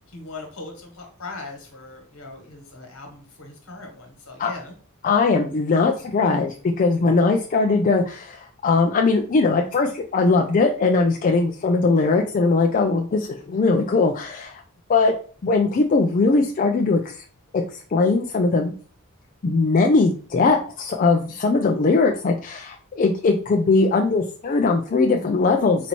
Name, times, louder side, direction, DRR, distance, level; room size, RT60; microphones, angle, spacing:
voice 1, 0.1-4.7, left 3 dB, 65° left, 1 dB, 1.5 m, -39 dB
voice 2, 5.0-14.6 14.9-15.1 15.4-17.2 17.5-18.7 19.4-25.9, left 3 dB, 40° left, 2 dB, 0.4 m, -20 dB
4.1 x 2.9 x 4.4 m, 0.42 s
head